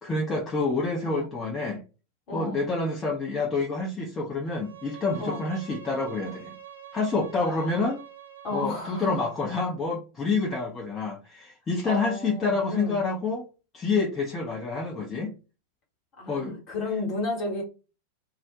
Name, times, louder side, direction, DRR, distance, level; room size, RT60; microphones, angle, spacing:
voice 1, 0.0-1.8 2.3-6.5 6.9-8.0 8.5-13.5 13.7-15.3 16.3-16.6, left 3 dB, 20° left, 0.5 m, -28 dB
voice 2, 2.3-2.6 5.2-5.4 7.4-7.8 8.4-9.2 11.8-13.0 16.2-17.6, left 2 dB, 40° left, 1.1 m, -33 dB
Bowed string instrument, 4.4-9.6, right 9 dB, 75° right, 0.4 m, -46 dB
2.3 x 2.0 x 2.8 m
figure-of-eight pair, 90°, 0 cm